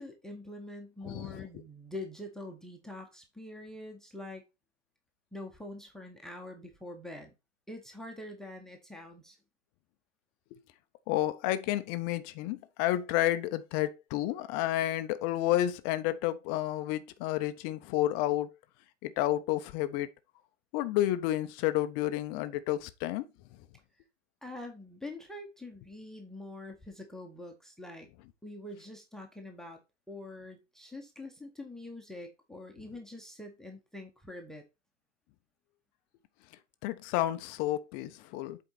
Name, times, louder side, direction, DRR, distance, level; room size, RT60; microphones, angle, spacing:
voice 1, 0.0-4.4 5.3-7.3 7.7-9.4 24.4-28.1 28.4-29.8 30.1-34.6, left 1 dB, ahead, 1.0 m, -45 dB
voice 2, 1.0-1.5 11.1-18.5 19.0-20.1 20.7-23.3 36.8-38.6, left 14 dB, 25° left, 0.6 m, -30 dB
8.0 x 4.5 x 4.1 m
figure-of-eight pair, 115°, 37 cm